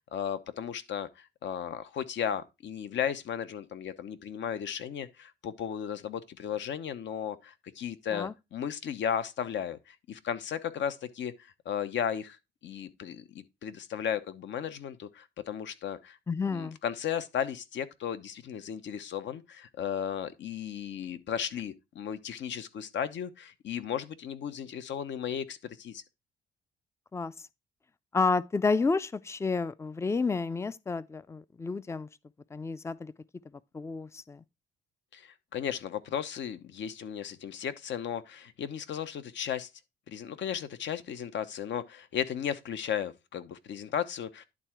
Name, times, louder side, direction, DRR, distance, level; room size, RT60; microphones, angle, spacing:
voice 1, 0.1-12.4 12.6-16.2 16.5-26.0 35.1-39.7 40.1-44.4, left 8 dB, 70° left, 1.0 m, -35 dB
voice 2, 16.3-16.8 27.1-27.3 28.1-32.1 32.5-33.1 33.7-34.4, left 4 dB, 15° left, 0.4 m, -30 dB
11.0 x 3.7 x 4.5 m
cardioid pair, 90°, 20 cm